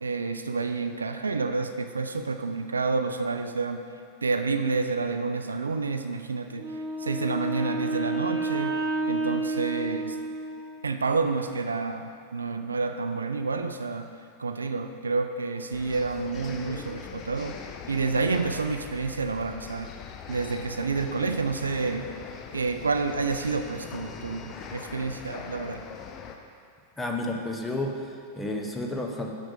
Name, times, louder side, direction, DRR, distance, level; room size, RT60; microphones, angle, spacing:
voice 1, 0.0-3.8 4.2-6.6 7.0-8.7 9.1-10.2 10.8-14.1 14.4-17.6 17.9-19.9 20.3-22.1 22.5-25.9, right 4 dB, 75° right, 7 dB, 0.4 m, -29 dB
Wind instrument woodwind instrument, 6.5-10.8, right 2 dB, 30° right, 1.7 m, -30 dB
sound 1, 15.7-26.4, left 6 dB, 30° left, 0.6 m, -42 dB
voice 2, 27.0-29.3, left 1 dB, 10° left, 1 dB, 0.9 m, -31 dB
6.1 x 6.1 x 6.5 m, 2.4 s
figure-of-eight pair, 90°, 0 cm